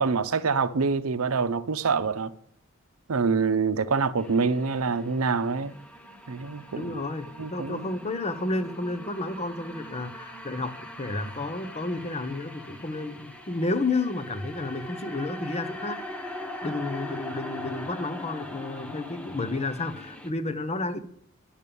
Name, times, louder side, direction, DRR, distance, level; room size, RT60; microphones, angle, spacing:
voice 1, 0.0-2.3 3.1-5.7 6.3-7.0 7.4-7.9, right 5 dB, 80° right, 0.7 m, -26 dB
sound 1, 4.2-20.3, left 1 dB, 5° left, 1.0 m, -41 dB
voice 2, 6.7-16.0 16.6-21.0, left 2 dB, 30° left, 0.9 m, -31 dB
10.5 x 7.3 x 6.9 m
head